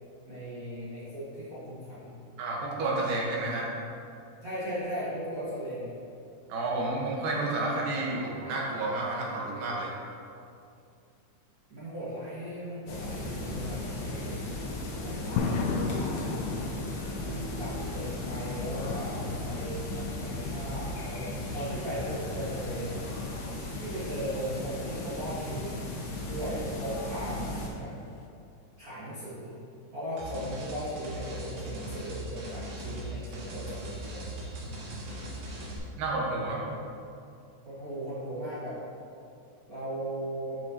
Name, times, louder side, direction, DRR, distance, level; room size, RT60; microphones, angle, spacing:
voice 1, 0.2-2.1 4.4-5.9 11.7-14.5 15.0-15.7 16.1-16.5 17.2-23.0 23.8-25.7 26.2-27.9 28.8-29.5 29.9-34.3 37.6-38.8 39.7-40.6, equal, 45° right, -12 dB, 1.1 m, -37 dB
voice 2, 2.4-3.7 6.5-9.9 21.5-21.7 34.6-34.8 36.0-36.6, right 2 dB, 90° right, -3 dB, 2.6 m, -31 dB
sound 1, 12.9-27.7, left 1 dB, 65° left, 1.5 m, -36 dB
sound 2, 15.4-28.3, left 5 dB, 80° left, 1.9 m, -38 dB
sound 3, 30.2-35.8, right 1 dB, 70° right, 2.3 m, -39 dB
9.2 x 5.1 x 2.7 m, 2.5 s
omnidirectional pair, 3.8 m